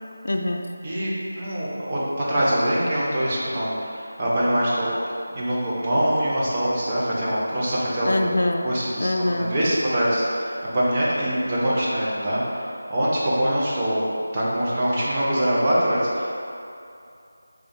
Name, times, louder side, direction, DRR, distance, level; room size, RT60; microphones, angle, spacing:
voice 1, 0.2-0.7 8.0-8.7 9.0-9.5, left 1 dB, 70° left, 3 dB, 0.3 m, -24 dB
voice 2, 0.8-2.0 2.3-4.9 5.3-8.3 8.6-14.0 14.3-16.3, equal, 25° right, -7 dB, 0.6 m, -24 dB
4.8 x 2.4 x 2.6 m, 2.6 s
figure-of-eight pair, 175°, 0 cm